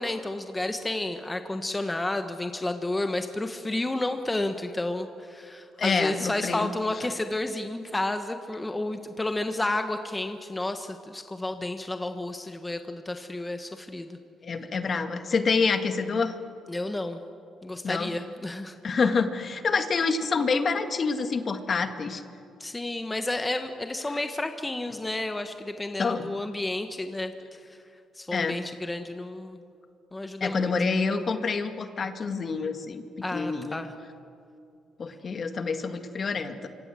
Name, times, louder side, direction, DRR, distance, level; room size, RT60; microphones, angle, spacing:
voice 1, 0.0-14.2 16.7-17.2 17.6-18.7 22.6-27.3 27.7-27.8 28.1-29.6 30.1-30.7 33.2-33.9, left 2 dB, 15° left, 7 dB, 1.4 m, -31 dB
voice 2, 5.8-6.7 14.4-16.3 17.8-18.1 18.8-22.2 26.0-26.3 28.3-28.6 30.4-33.0 33.3-33.8 35.0-36.7, left 4 dB, 45° left, 7 dB, 2.0 m, -27 dB
25.5 x 25.5 x 7.7 m, 2.5 s
cardioid pair, 90°, 0 cm